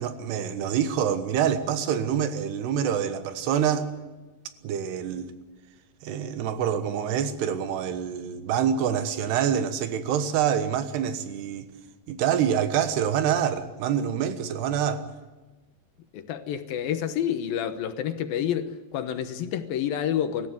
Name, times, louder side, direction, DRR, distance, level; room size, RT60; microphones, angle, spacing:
voice 1, 0.0-3.9 4.6-5.3 6.0-11.7 12.1-15.0, right 8 dB, 90° right, 3.5 m, -26 dB
voice 2, 16.1-20.5, left 9 dB, 70° left, 2.7 m, -29 dB
25.5 x 14.5 x 9.3 m
omnidirectional pair, 4.6 m